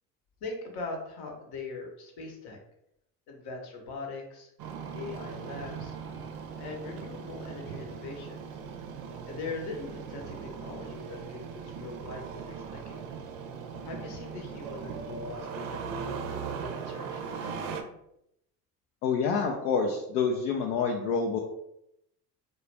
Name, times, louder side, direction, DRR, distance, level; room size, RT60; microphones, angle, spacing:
voice 1, 0.4-2.6 3.3-4.5 4.9-5.9 6.6-8.4 9.2-13.0 13.8-17.8, left 3 dB, 55° left, 1 dB, 0.9 m, -41 dB
Engine starting, 4.6-17.8, right 6 dB, 60° right, 0.5 m, -39 dB
voice 2, 19.0-21.4, left 5 dB, 75° left, 0 dB, 0.5 m, -27 dB
2.3 x 2.0 x 3.2 m, 0.79 s
hypercardioid pair, 65°, 48 cm